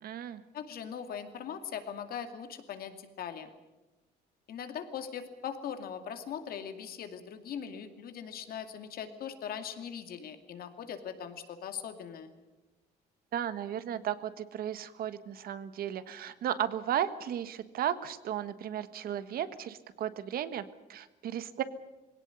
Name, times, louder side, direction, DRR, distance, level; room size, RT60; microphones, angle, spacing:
voice 1, 0.0-0.4 13.3-21.6, right 10 dB, 60° right, 13 dB, 1.4 m, -35 dB
voice 2, 0.5-3.5 4.5-12.3, left 8 dB, 60° left, 8 dB, 2.5 m, -40 dB
21.0 x 17.5 x 9.6 m, 1.1 s
cardioid pair, 110°, 17 cm